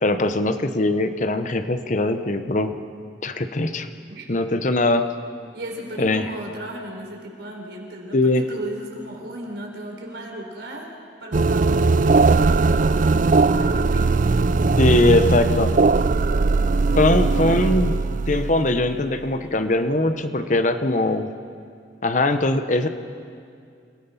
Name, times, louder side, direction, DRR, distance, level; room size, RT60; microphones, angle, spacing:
voice 1, 0.0-2.8 3.2-3.9 4.3-5.1 6.0-6.3 8.1-8.4 14.8-15.7 17.0-17.9 18.3-21.3 22.0-22.9, left 2 dB, 45° left, 9 dB, 0.9 m, -21 dB
voice 2, 5.5-10.9 11.2-15.4, right 1 dB, 70° right, 1 dB, 4.0 m, -36 dB
sound 1, 11.3-19.3, right 3 dB, 45° right, 0.4 m, -19 dB
27.5 x 17.5 x 5.7 m, 2.3 s
head